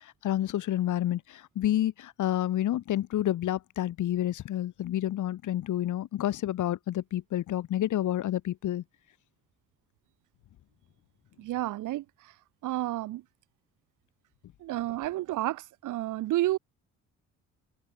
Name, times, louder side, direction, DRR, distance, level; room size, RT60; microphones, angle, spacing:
voice 1, 0.2-8.8, left 13 dB, 80° left, 6.0 m, -29 dB
voice 2, 11.4-12.3 12.6-13.2 14.6-16.6, right 16 dB, 85° right, 2.5 m, -31 dB
cardioid pair, 90°, 30 cm